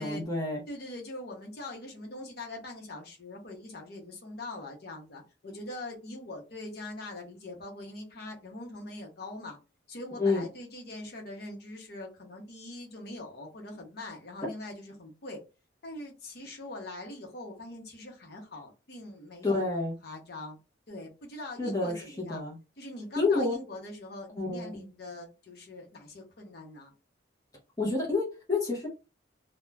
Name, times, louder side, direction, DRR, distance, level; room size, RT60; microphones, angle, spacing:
voice 1, 0.0-0.6 10.2-10.5 19.4-19.9 21.6-22.6 23.2-23.6 24.4-24.8 27.8-28.9, left 3 dB, 20° left, 0.7 m, -29 dB
voice 2, 0.7-9.6 9.9-15.4 15.8-20.6 20.9-22.4 22.8-26.9, left 2 dB, 60° left, 0.8 m, -42 dB
2.4 x 2.1 x 3.1 m
head